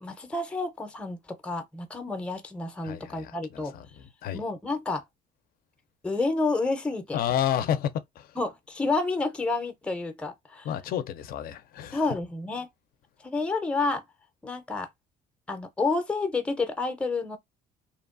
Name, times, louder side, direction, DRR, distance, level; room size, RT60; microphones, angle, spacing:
voice 1, 0.0-3.7 4.3-5.0 6.0-7.2 8.4-10.7 11.9-12.7 13.2-14.0 14.4-14.9 15.5-17.4, left 3 dB, 5° left, 0.5 m, -29 dB
voice 2, 2.8-4.4 7.1-8.4 10.6-12.0, left 10 dB, 60° left, 0.4 m, -31 dB
2.8 x 2.2 x 2.4 m
cardioid pair, 110°, 17 cm